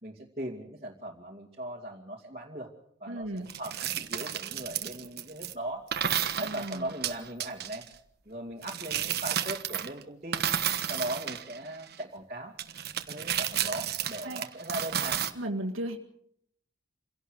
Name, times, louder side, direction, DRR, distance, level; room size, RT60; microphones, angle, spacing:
voice 1, 0.0-2.7 3.0-5.9 6.4-7.9 8.3-10.5 10.9-12.5 13.1-15.3, right 1 dB, 30° right, -5 dB, 2.5 m, -39 dB
voice 2, 3.1-3.5 6.4-6.9 14.2-14.5 15.3-16.0, right 1 dB, 85° right, 2 dB, 2.0 m, -35 dB
sound 1, 3.5-5.5 5.9-7.9 8.6-10.0 10.3-12.0 12.6-15.3, right 9 dB, 50° right, 1.3 m, -32 dB
27.5 x 17.0 x 6.5 m, 0.71 s
head